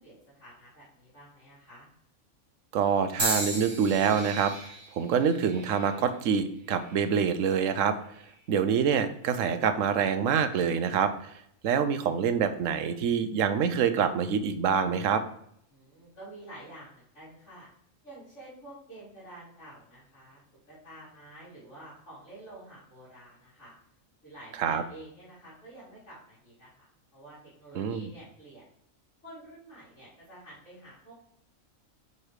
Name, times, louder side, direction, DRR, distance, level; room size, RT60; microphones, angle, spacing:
voice 1, 0.0-1.9 15.7-17.7 18.0-23.7 24.2-28.6 29.2-31.2, right 1 dB, 60° left, -11 dB, 3.1 m, -49 dB
voice 2, 2.7-4.5 4.9-8.0 8.5-11.3 11.6-15.2 24.6-24.8 27.8-28.1, right 7 dB, 70° right, 10 dB, 1.0 m, -26 dB
sound 1, 3.2-7.3 8.0-8.5 9.4-9.6, right 2 dB, 20° right, 1.0 m, -36 dB
5.5 x 4.8 x 4.8 m, 0.68 s
omnidirectional pair, 1.4 m